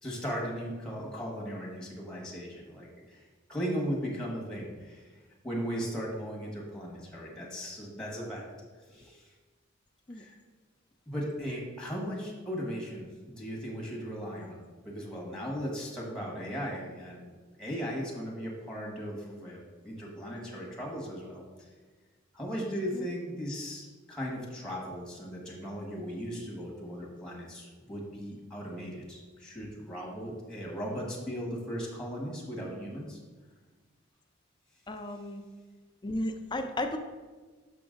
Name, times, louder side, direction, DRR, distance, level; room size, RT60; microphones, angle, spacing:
voice 1, 0.0-3.2 3.5-5.1 5.4-8.4 8.9-9.3 10.1-10.3 11.1-21.7 22.3-33.2, equal, 5° left, -3 dB, 1.4 m, -37 dB
voice 2, 34.9-35.4 36.0-37.0, left 1 dB, 20° left, 5 dB, 0.4 m, -34 dB
6.0 x 5.9 x 3.8 m, 1.4 s
head